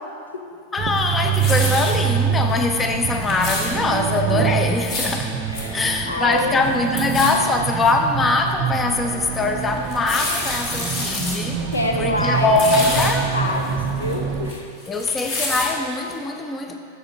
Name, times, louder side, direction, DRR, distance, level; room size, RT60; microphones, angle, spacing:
voice 1, 0.7-5.3 5.7-11.6 12.0-13.3 14.9-16.8, left 3 dB, 15° left, 4 dB, 0.5 m, -22 dB
sound 1, 0.8-14.5, right 7 dB, 40° right, 0.4 m, -25 dB
sound 2, 1.0-2.0 2.5-2.6 2.9-3.7 4.6-5.2 5.5-5.6 5.9-6.0 6.3-6.7 7.0-7.3 7.9-8.0 8.5-8.6 9.8-11.4 11.7-11.9 12.2-13.1 13.6-14.6 14.8-15.7 16.1-16.2, left 2 dB, 40° left, 1.7 m, -28 dB
voice 2, 5.5-6.6 11.7-12.5 12.9-14.7, left 1 dB, 75° left, 3 dB, 0.7 m, -26 dB
8.6 x 6.5 x 3.8 m, 2.4 s
figure-of-eight pair, 90°, 0 cm